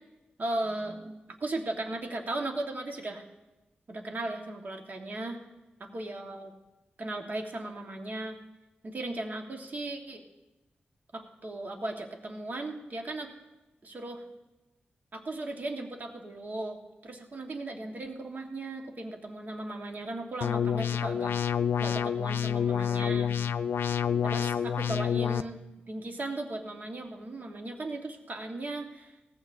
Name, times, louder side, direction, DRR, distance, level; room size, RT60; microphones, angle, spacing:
voice 1, 0.4-1.1 1.4-3.2 3.9-5.4 5.9-6.5 7.0-8.4 8.8-10.2 11.1-13.3 13.8-14.2 15.1-21.3 21.8-23.3 24.2-25.6 25.9-29.1, right 2 dB, 50° right, 3 dB, 1.4 m, -37 dB
sound 1, 20.4-25.4, left 8 dB, 90° left, 0.4 m, -28 dB
18.0 x 15.0 x 2.6 m, 1.0 s
cardioid pair, 80°, 4 cm